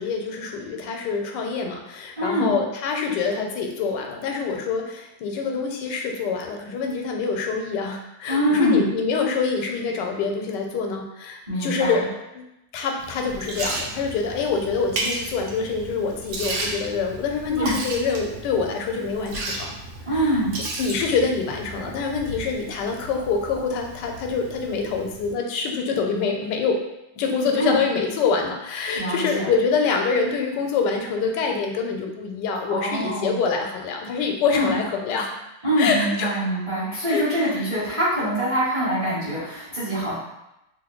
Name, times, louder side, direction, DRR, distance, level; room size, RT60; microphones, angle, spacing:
voice 1, 0.0-12.4 12.7-19.7 20.1-20.4 20.8-26.8 27.2-35.3 35.8-36.3 37.1-37.6, left 5 dB, 85° left, 2 dB, 1.2 m, -25 dB
voice 2, 2.2-2.5 8.3-8.9 11.5-12.1 17.5-17.7 20.1-20.6 27.6-27.7 28.9-29.5 32.7-33.4 34.5-34.7 35.6-40.2, right 1 dB, 25° right, -10 dB, 0.8 m, -24 dB
Liquid, 13.0-25.3, right 2 dB, 75° right, 1.2 m, -34 dB
3.1 x 2.1 x 3.6 m, 0.88 s
omnidirectional pair, 1.8 m